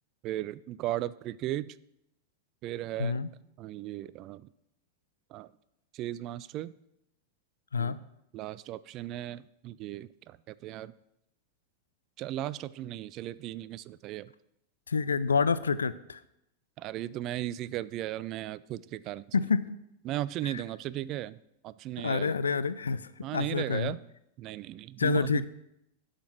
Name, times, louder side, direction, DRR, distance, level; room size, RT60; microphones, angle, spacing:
voice 1, 0.2-1.8 2.6-3.2 3.6-4.5 5.3-5.5 5.9-6.7 7.8-7.9 8.3-10.9 12.2-14.3 16.8-19.2 20.0-21.4 21.6-22.4 23.2-24.0 24.4-25.4, right 14 dB, 35° right, 17 dB, 0.3 m, -36 dB
voice 2, 3.0-3.3 7.7-8.0 14.9-16.2 19.3-19.6 20.4-20.6 22.0-23.9 25.0-25.5, left 5 dB, 70° left, 15 dB, 0.4 m, -28 dB
12.0 x 5.1 x 5.9 m, 0.82 s
figure-of-eight pair, 90°, 0 cm